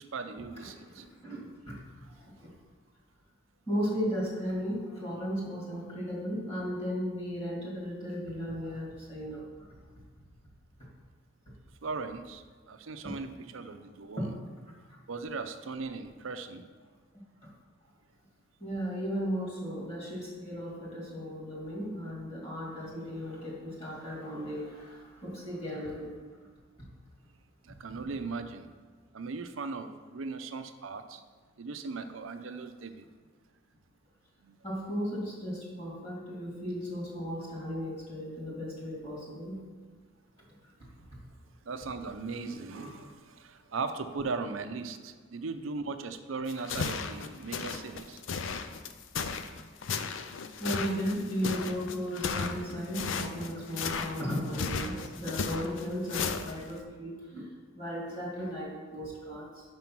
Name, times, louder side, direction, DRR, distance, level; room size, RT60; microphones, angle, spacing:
voice 1, 0.0-1.0 7.6-7.7 11.8-14.3 15.1-16.6 27.6-28.7 29.1-31.2 31.6-33.1 34.4-34.6 41.6-48.2, right 4 dB, 80° right, 9 dB, 0.6 m, -38 dB
voice 2, 0.6-1.8 2.2-2.5 3.7-9.4 13.0-13.1 14.2-14.3 18.6-26.1 34.6-39.7 42.4-43.1 50.6-57.4 57.8-59.6, equal, 30° left, -5 dB, 2.3 m, -35 dB
sound 1, 46.5-56.8, left 5 dB, 70° left, 0.5 m, -35 dB
5.5 x 5.2 x 6.0 m, 1.5 s
head